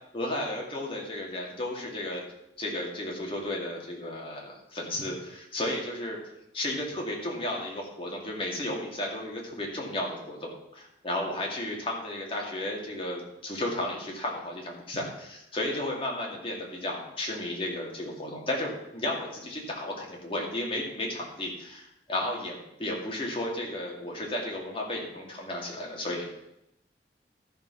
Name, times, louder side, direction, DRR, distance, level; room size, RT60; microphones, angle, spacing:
voice 1, 0.1-2.2 2.6-6.2 6.5-26.4, left 1 dB, 30° left, -1 dB, 2.3 m, -33 dB
12.5 x 5.9 x 5.8 m, 0.84 s
head